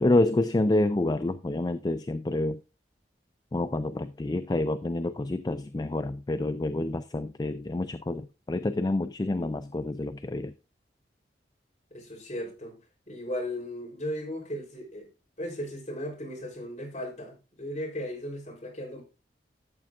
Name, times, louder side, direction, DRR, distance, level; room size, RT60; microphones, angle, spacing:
voice 1, 0.0-2.6 3.5-10.5, left 2 dB, 20° left, 0.3 m, -28 dB
voice 2, 11.9-12.8 13.1-15.1 15.4-19.0, left 1 dB, 40° left, 3.7 m, -36 dB
13.5 x 7.4 x 2.5 m
head